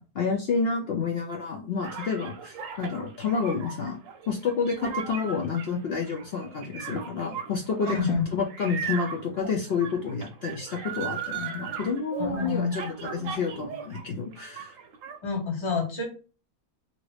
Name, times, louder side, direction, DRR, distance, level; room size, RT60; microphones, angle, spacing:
voice 1, 0.1-4.0 4.3-14.7, left 5 dB, 70° left, 0 dB, 0.6 m, -29 dB
sound 1, 1.8-14.0 14.3-15.2, right 7 dB, 70° right, 0.9 m, -37 dB
voice 2, 7.8-8.2 12.2-12.9 15.2-16.0, left 4 dB, 25° left, -1 dB, 0.8 m, -28 dB
2.9 x 2.6 x 3.1 m, 0.34 s
omnidirectional pair, 1.5 m